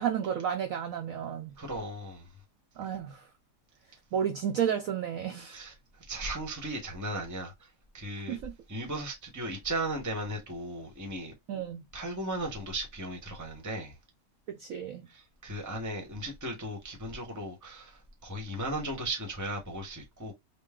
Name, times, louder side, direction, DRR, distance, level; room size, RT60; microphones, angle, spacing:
voice 1, 0.0-1.5 2.8-3.3 4.1-5.6 8.3-8.5 11.5-11.8 14.5-15.0, right 9 dB, 70° right, 0.8 m, -32 dB
voice 2, 1.6-2.3 5.4-5.7 6.1-7.7 7.9-8.4 8.7-11.3 11.9-14.0 15.1-20.3, right 1 dB, 15° right, 0.8 m, -36 dB
3.8 x 2.2 x 3.6 m
omnidirectional pair, 1.8 m